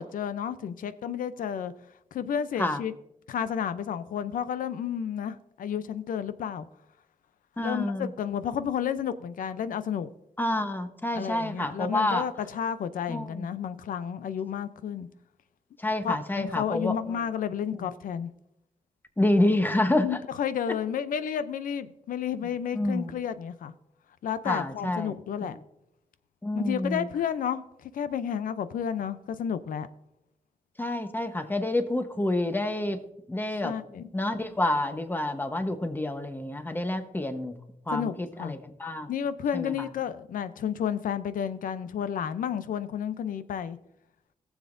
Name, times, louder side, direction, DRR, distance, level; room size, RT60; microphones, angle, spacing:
voice 1, 0.0-1.7 2.1-2.9 3.3-6.7 7.6-10.1 11.1-15.1 16.0-18.3 20.0-23.7 24.2-25.6 26.5-29.9 33.6-34.1 37.9-38.5 39.1-43.8, left 8 dB, 85° left, 13 dB, 0.6 m, -31 dB
voice 2, 7.6-8.1 10.4-12.2 13.1-13.5 15.8-17.0 19.2-20.2 22.7-23.1 24.5-25.1 26.4-27.0 30.8-33.7 34.1-37.6 37.9-39.1 39.5-39.7, left 1 dB, 15° left, 7 dB, 1.0 m, -28 dB
18.5 x 7.2 x 2.6 m, 0.83 s
cardioid pair, 90°, 14 cm